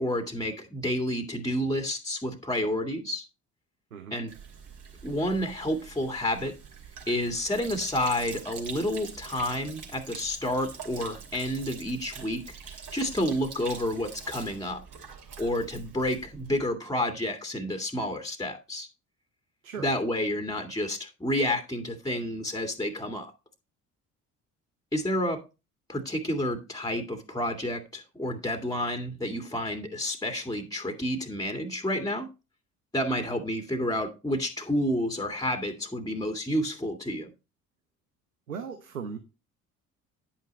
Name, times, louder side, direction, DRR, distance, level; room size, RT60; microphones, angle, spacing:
voice 1, 0.0-3.2 4.1-4.3 5.0-6.5 7.1-12.4 12.9-14.8 15.4-18.9 19.8-23.3 24.9-25.4 25.9-32.3 32.9-37.3, left 1 dB, 10° left, 2.0 m, -30 dB
Sink (filling or washing), 4.3-16.6, right 5 dB, 50° right, 2.9 m, -44 dB
voice 2, 38.5-39.2, right 6 dB, 85° right, 0.9 m, -37 dB
10.5 x 5.7 x 4.2 m
figure-of-eight pair, 50°, 40 cm